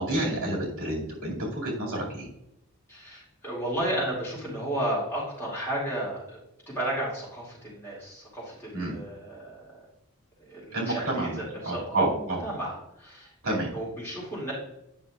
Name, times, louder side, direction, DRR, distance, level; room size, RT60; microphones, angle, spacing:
voice 1, 0.0-2.3 8.7-9.0 10.7-12.4 13.4-13.7, right 1 dB, 75° right, -3 dB, 2.4 m, -29 dB
voice 2, 2.9-6.4 6.7-9.8 10.5-14.5, right 1 dB, 10° left, -6 dB, 2.3 m, -33 dB
9.2 x 5.7 x 2.4 m, 0.85 s
head